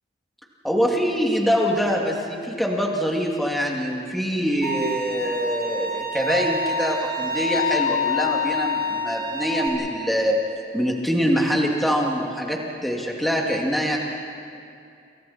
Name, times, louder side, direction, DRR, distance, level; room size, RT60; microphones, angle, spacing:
voice 1, 0.6-10.4 10.7-14.0, equal, ahead, -2 dB, 2.6 m, -24 dB
Bowed string instrument, 4.6-9.7, left 3 dB, 35° left, 3.5 m, -27 dB
29.0 x 28.0 x 4.4 m, 2.5 s
head